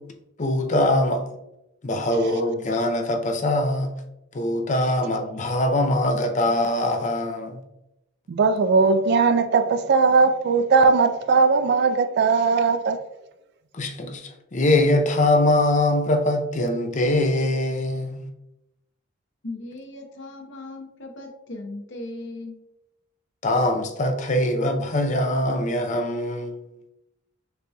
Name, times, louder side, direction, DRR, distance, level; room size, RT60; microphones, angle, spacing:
voice 1, 0.4-1.2 1.8-3.9 4.3-7.6 13.7-18.3 23.4-26.6, left 1 dB, 40° left, 0.5 m, -22 dB
voice 2, 8.3-13.0, right 4 dB, 55° right, 0.3 m, -19 dB
voice 3, 19.4-22.6, left 2 dB, 65° left, 0.8 m, -37 dB
6.5 x 2.8 x 2.3 m
head